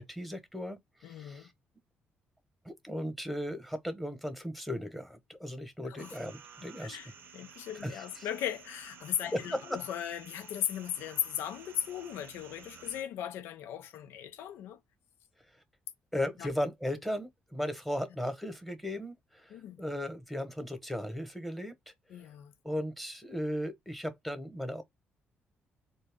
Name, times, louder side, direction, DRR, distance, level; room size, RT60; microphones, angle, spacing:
voice 1, 0.0-1.5 2.6-7.0 7.7-8.3 9.3-9.8 15.5-15.6 16.1-22.3 22.6-24.8, left 1 dB, 5° left, 1.0 m, -36 dB
voice 2, 1.0-1.5 5.8-6.2 6.8-14.8 16.4-16.5 19.5-19.8 22.1-22.5, left 10 dB, 85° left, 0.5 m, -37 dB
sound 1, 6.0-13.0, right 7 dB, 65° right, 0.6 m, -53 dB
4.0 x 2.3 x 3.5 m
cardioid pair, 90°, 4 cm